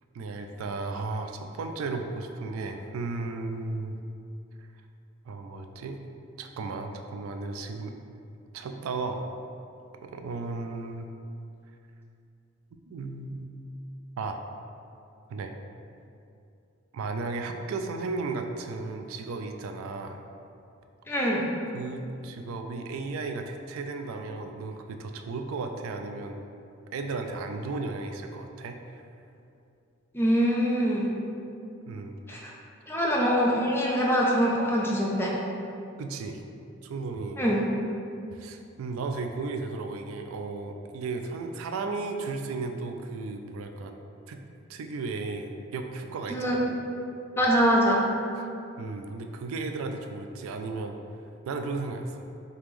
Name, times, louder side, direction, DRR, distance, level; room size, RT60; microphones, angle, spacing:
voice 1, 0.1-4.0 4.6-4.7 5.3-6.0 6.4-7.9 8.5-9.2 10.0-11.1 12.9-13.5 14.2-14.4 15.3-15.5 16.9-20.2 21.7-26.4 26.9-29.0 31.9-32.2 32.9-33.0 36.0-36.4 36.8-37.4 38.3-43.9 44.3-44.4 44.7-46.7 48.4-48.5 48.8-51.0 51.5-52.3, right 3 dB, 85° right, 5 dB, 0.3 m, -34 dB
voice 2, 21.1-21.4 30.1-31.1 32.3-32.5 32.9-35.3 37.4-37.7 46.3-46.7 47.4-48.0, equal, 10° left, -3 dB, 0.4 m, -24 dB
3.2 x 2.9 x 3.6 m, 2.6 s
head